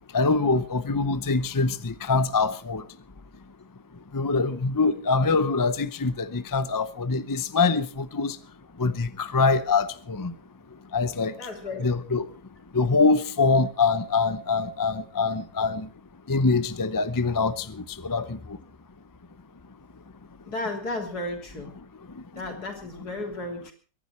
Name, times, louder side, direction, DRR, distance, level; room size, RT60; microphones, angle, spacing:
voice 1, 0.1-2.8 4.1-8.4 8.8-10.3 10.9-11.3 11.8-12.2 12.7-15.9 16.3-17.6 18.0-18.4, left 4 dB, 30° left, 0.3 m, -24 dB
voice 2, 11.4-11.9 20.4-21.7 22.4-23.7, left 2 dB, 70° left, 3.7 m, -34 dB
23.0 x 11.0 x 4.4 m
omnidirectional pair, 1.8 m